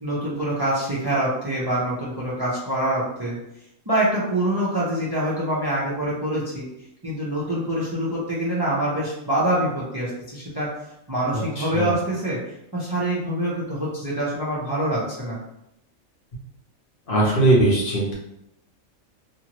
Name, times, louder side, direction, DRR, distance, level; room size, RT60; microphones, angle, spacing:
voice 1, 0.0-3.4 3.9-6.7 7.0-10.7 11.1-15.4, right 1 dB, 25° right, -6 dB, 0.5 m, -25 dB
voice 2, 11.6-11.9 17.1-18.1, right 2 dB, 50° left, -5 dB, 0.9 m, -19 dB
2.6 x 2.6 x 2.9 m, 0.81 s
omnidirectional pair, 1.4 m